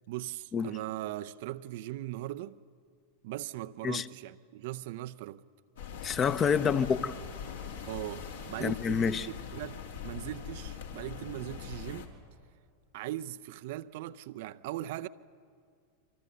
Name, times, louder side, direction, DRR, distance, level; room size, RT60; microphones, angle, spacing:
voice 1, 0.1-2.6 3.2-5.4 6.6-6.7 7.9-12.1 12.9-15.1, right 15 dB, 50° right, 0.6 m, -39 dB
sound 1, 5.8-12.1, left 7 dB, 65° left, 2.7 m, -42 dB
voice 2, 6.0-7.1 8.6-9.3, left 6 dB, 25° left, 0.9 m, -28 dB
27.5 x 25.5 x 6.5 m
figure-of-eight pair, 90°, 0 cm